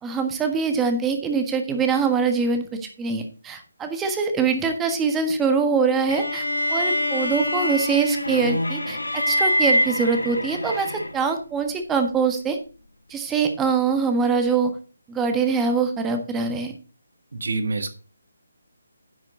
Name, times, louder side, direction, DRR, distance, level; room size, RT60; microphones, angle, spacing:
voice 1, 0.0-12.6 13.1-14.7 15.1-16.7, right 5 dB, 10° right, 5 dB, 1.5 m, -23 dB
sound 1, 6.1-11.4, left 1 dB, 85° left, 2.0 m, -25 dB
voice 2, 17.3-17.9, right 3 dB, 65° right, 8 dB, 1.7 m, -26 dB
10.5 x 7.3 x 3.8 m, 0.34 s
figure-of-eight pair, 150°, 0 cm